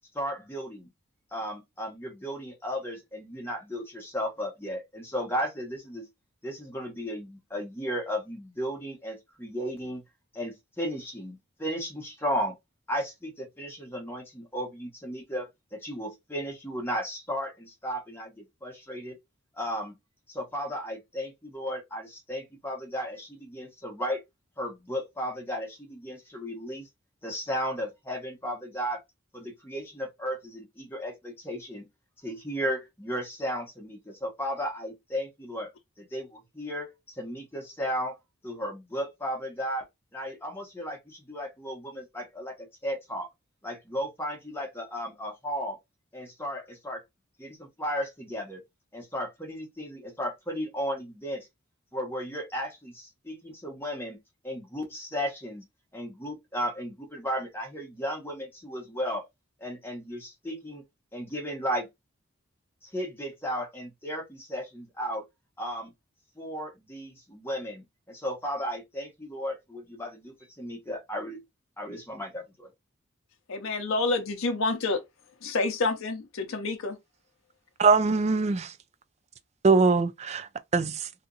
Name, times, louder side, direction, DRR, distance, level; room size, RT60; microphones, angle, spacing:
voice 1, 0.1-0.9 1.3-6.1 6.4-10.0 10.3-12.5 12.9-19.2 19.5-19.9 20.3-24.2 24.6-26.9 27.2-29.0 29.3-31.8 32.2-35.7 36.0-38.2 38.4-39.9 40.1-43.3 43.6-45.8 46.1-47.0 47.4-48.6 48.9-51.5 51.9-54.2 54.4-55.6 55.9-59.3 59.6-60.8 61.1-61.9 62.8-65.2 65.6-65.9 66.4-71.4 71.8-72.7, equal, 10° left, 0.9 m, -34 dB
voice 2, 73.5-75.0 75.4-77.0, left 3 dB, 85° left, 0.6 m, -28 dB
voice 3, 77.8-78.7 79.6-81.1, right 4 dB, 30° right, 0.3 m, -22 dB
2.9 x 2.5 x 3.8 m
head